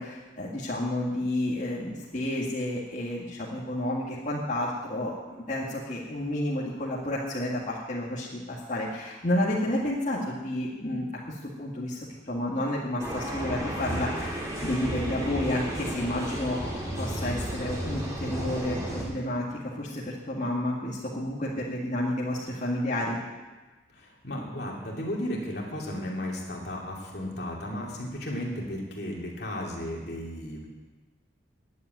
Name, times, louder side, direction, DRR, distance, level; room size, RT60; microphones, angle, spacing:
voice 1, 0.0-16.6 17.0-23.2, left 1 dB, 40° left, -7 dB, 2.0 m, -31 dB
sound 1, 13.0-19.0, right 1 dB, 15° right, 3.2 m, -33 dB
voice 2, 23.9-30.7, left 1 dB, 55° left, -2 dB, 2.8 m, -34 dB
11.0 x 8.2 x 9.3 m, 1.2 s
head